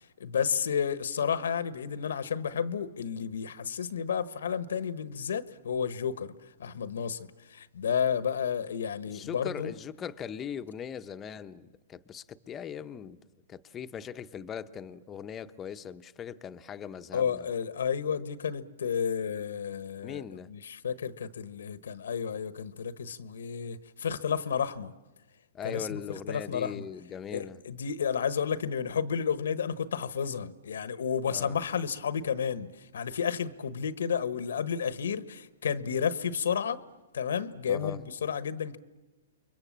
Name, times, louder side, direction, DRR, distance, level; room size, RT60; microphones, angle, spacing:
voice 1, 0.2-6.3 6.6-9.7 17.1-20.2 20.5-24.9 25.6-26.9 27.3-36.8 37.1-38.8, left 7 dB, 85° left, 1.3 m, -31 dB
voice 2, 9.1-13.2 13.5-17.5 20.0-20.5 25.5-27.6 31.2-31.6 37.7-38.0, left 8 dB, 20° left, 0.9 m, -40 dB
30.0 x 23.0 x 7.5 m
hypercardioid pair, 140°, 0 cm